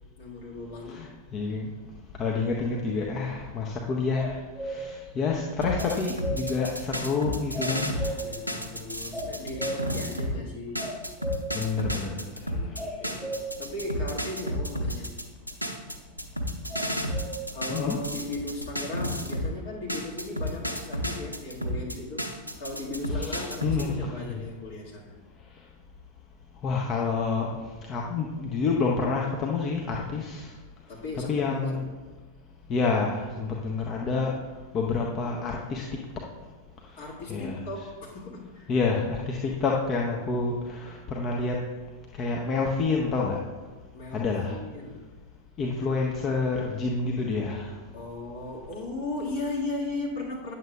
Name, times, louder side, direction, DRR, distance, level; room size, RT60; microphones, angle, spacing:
voice 1, 0.2-1.1 8.1-10.9 12.5-15.2 17.5-22.3 22.6-25.2 30.9-31.9 37.0-38.7 43.9-45.1 47.9-50.5, left 2 dB, 55° left, -4 dB, 2.0 m, -37 dB
voice 2, 0.9-1.7 2.2-8.2 11.5-12.8 17.7-18.0 23.1-24.4 26.6-27.5 27.9-30.5 31.3-31.8 32.7-34.3 34.7-36.0 37.3-37.6 38.7-41.6 42.2-43.4 44.1-44.6 45.6-47.7, left 4 dB, 30° left, -1 dB, 0.7 m, -28 dB
sound 1, 4.1-4.8 5.8-6.4 7.5-8.3 9.1-9.9 10.8-11.5 12.8-13.4 16.7-17.3, equal, 10° left, 1.8 m, -35 dB
sound 2, 5.6-10.4 10.8-19.5 19.9-23.9, equal, 90° right, 0.6 m, -32 dB
9.1 x 7.1 x 2.4 m, 1.3 s
figure-of-eight pair, 90°, 0 cm